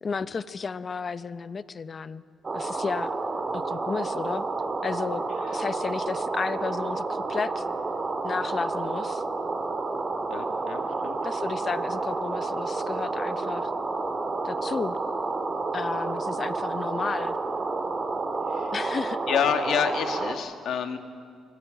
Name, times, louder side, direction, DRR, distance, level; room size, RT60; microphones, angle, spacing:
voice 1, 0.0-2.2 2.5-3.2 3.5-4.4 4.8-5.2 5.5-7.6 8.2-9.2 11.2-13.7 14.4-15.0 15.7-17.4 18.7-19.3, left 5 dB, 40° left, 15 dB, 0.7 m, -33 dB
sound 1, 2.4-20.4, right 3 dB, 35° right, 1.9 m, -30 dB
voice 2, 10.3-11.2 18.5-18.7 19.3-21.0, left 8 dB, 70° left, 7 dB, 1.7 m, -28 dB
23.5 x 13.5 x 9.0 m, 2.1 s
cardioid pair, 90°, 0 cm